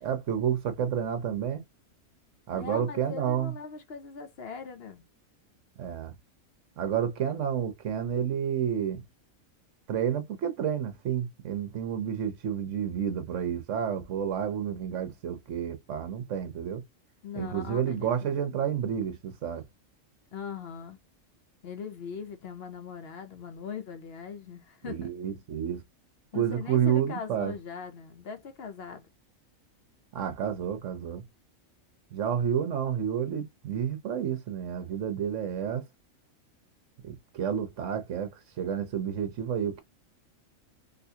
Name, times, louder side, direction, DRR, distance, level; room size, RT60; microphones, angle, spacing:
voice 1, 0.0-1.6 2.5-3.5 5.8-6.1 6.8-9.0 9.9-16.8 17.3-19.6 24.8-25.8 26.3-27.5 30.1-31.2 32.1-35.9 37.0-39.8, right 8 dB, 65° right, 1.2 m, -30 dB
voice 2, 2.5-5.0 17.2-18.1 20.3-21.0 21.6-25.1 26.3-29.1, left 6 dB, 60° left, 0.7 m, -40 dB
3.9 x 2.4 x 2.7 m
omnidirectional pair, 1.4 m